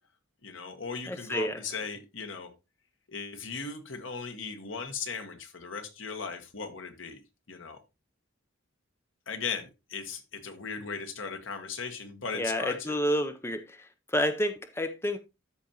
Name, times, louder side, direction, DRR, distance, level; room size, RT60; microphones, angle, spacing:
voice 1, 0.4-2.5 3.1-7.2 7.5-7.8 9.3-12.9, left 5 dB, 75° left, 1.4 m, -37 dB
voice 2, 1.1-1.6 12.3-15.2, equal, 10° left, 0.6 m, -30 dB
13.0 x 5.1 x 2.9 m
head